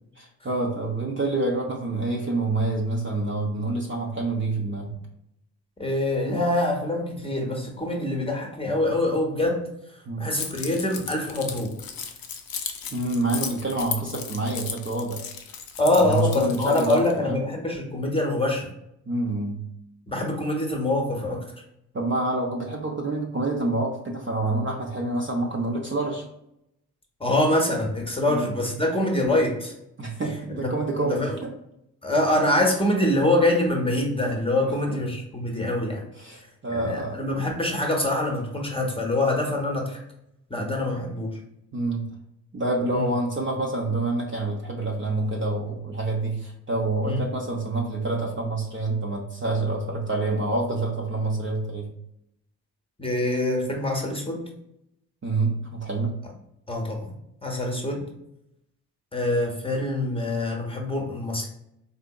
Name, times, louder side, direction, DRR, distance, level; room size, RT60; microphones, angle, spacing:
voice 1, 0.2-4.9 10.1-10.3 12.9-15.2 16.0-17.4 19.1-19.7 21.9-26.2 28.3-28.5 30.0-31.5 34.9-35.0 36.2-37.2 41.7-42.2 42.5-51.9 55.2-56.2, right 2 dB, 25° right, -1 dB, 0.7 m, -27 dB
voice 2, 5.8-11.7 15.8-18.7 20.1-21.5 27.2-29.7 30.5-30.7 31.0-31.4 32.0-36.0 36.7-40.0 40.5-41.4 42.9-43.1 47.0-47.3 53.0-54.4 56.7-57.1 57.4-58.0 59.1-61.5, left 1 dB, 10° left, 0 dB, 0.9 m, -25 dB
Keys jangling, 10.4-17.1, left 7 dB, 50° left, 0.6 m, -35 dB
3.7 x 2.6 x 2.3 m, 0.81 s
hypercardioid pair, 45°, 45 cm